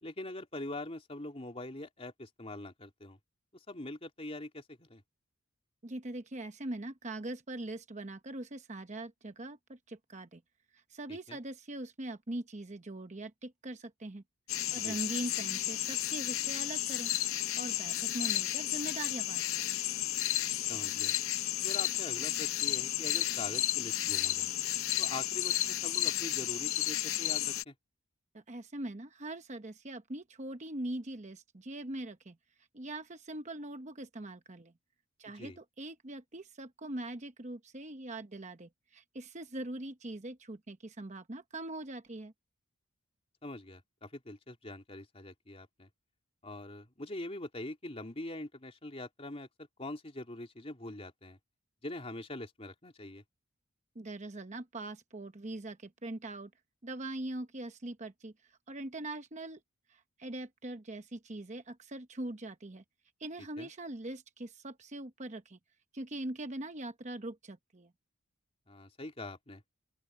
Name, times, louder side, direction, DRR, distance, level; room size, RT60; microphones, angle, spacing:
voice 1, 0.0-3.2 3.7-5.0 11.1-11.4 14.8-15.0 20.7-21.1 21.6-24.5 25.0-27.7 35.4-35.6 43.4-45.9 46.4-51.4 51.8-53.2 63.6-63.7 68.7-69.6, left 2 dB, 30° left, 3.1 m, -43 dB
voice 2, 5.8-10.4 10.7-14.2 14.7-17.1 17.6-19.6 28.3-32.4 32.7-34.7 35.2-42.3 53.9-56.5 56.8-59.6 59.9-62.8 63.2-65.6 65.9-67.9, right 1 dB, 35° right, 0.9 m, -42 dB
sound 1, 14.5-27.6, left 14 dB, 70° left, 0.7 m, -32 dB
open air
head